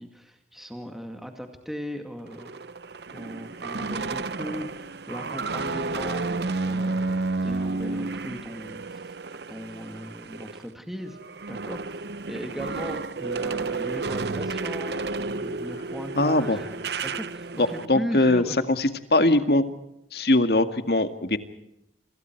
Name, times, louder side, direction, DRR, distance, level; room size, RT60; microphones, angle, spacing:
voice 1, 0.0-2.6 3.1-6.3 6.6-9.1 9.5-11.2 11.5-16.7 17.0-18.6, equal, ahead, 4 dB, 2.2 m, -37 dB
sound 1, 2.3-10.7 11.0-17.9, right 3 dB, 70° right, 0.8 m, -31 dB
voice 2, 16.2-16.6 17.6-18.4 18.8-19.6 20.1-21.4, left 1 dB, 65° left, 9 dB, 2.1 m, -21 dB
29.0 x 26.5 x 4.7 m, 0.81 s
head